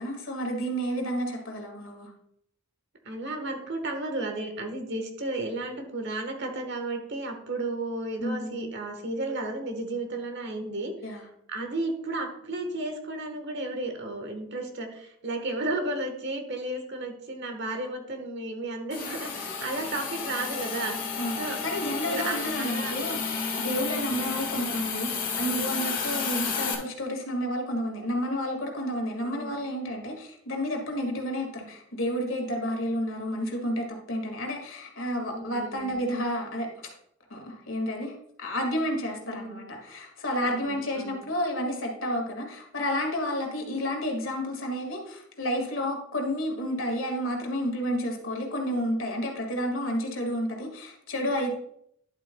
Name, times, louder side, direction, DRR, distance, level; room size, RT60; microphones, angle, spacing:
voice 1, 0.0-2.1 8.2-8.7 11.0-11.2 21.2-36.7 37.3-51.5, equal, 70° left, 2 dB, 2.0 m, -31 dB
voice 2, 3.0-11.2 11.5-21.0 21.4-21.6 22.0-22.9 29.3-29.5 35.3-36.0 39.2-39.6 40.4-41.2, right 2 dB, 55° right, 5 dB, 1.3 m, -33 dB
Hiss, 18.9-26.7, left 5 dB, 40° left, 1.6 m, -31 dB
11.0 x 7.6 x 2.3 m, 0.73 s
head